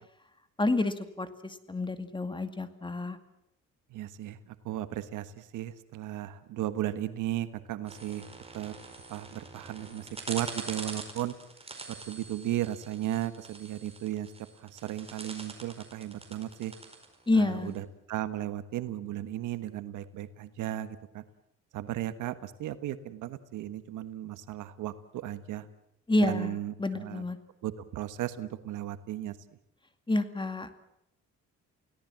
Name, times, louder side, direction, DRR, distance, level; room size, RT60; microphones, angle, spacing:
voice 1, 0.6-3.2 17.3-17.8 26.1-27.4 30.1-30.7, left 2 dB, 15° left, 10 dB, 2.2 m, -29 dB
voice 2, 3.9-8.3 8.5-8.7 9.1-11.4 11.9-16.7 17.3-21.2 21.7-25.7 26.2-27.2 27.6-29.4, right 13 dB, 85° right, 12 dB, 1.4 m, -35 dB
sound 1, 7.9-17.8, right 3 dB, 20° right, 4.8 m, -45 dB
29.5 x 17.5 x 7.5 m, 0.81 s
cardioid pair, 90°, 30 cm